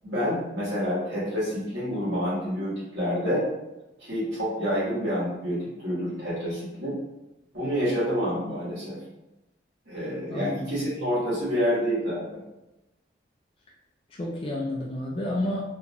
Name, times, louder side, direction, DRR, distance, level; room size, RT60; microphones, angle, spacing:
voice 1, 0.0-3.4 4.0-7.0 7.5-9.0 9.8-12.4, equal, 65° right, -9 dB, 1.5 m, -28 dB
voice 2, 14.1-15.6, left 1 dB, 30° left, -2 dB, 0.3 m, -30 dB
2.9 x 2.4 x 2.6 m, 0.96 s
head